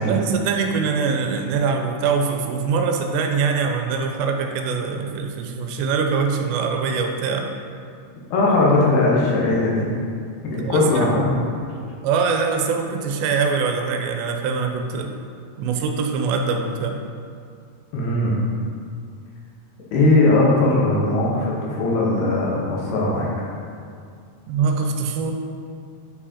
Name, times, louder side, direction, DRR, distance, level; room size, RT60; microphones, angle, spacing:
voice 1, 0.1-7.5 10.6-11.1 12.0-15.1 15.6-17.0 24.5-25.3, right 5 dB, 90° right, 4 dB, 2.8 m, -23 dB
voice 2, 8.3-9.9 10.4-11.4 17.9-18.4 19.9-23.3, left 2 dB, 75° left, -4 dB, 3.1 m, -19 dB
8.8 x 4.8 x 4.2 m, 2.3 s
omnidirectional pair, 4.9 m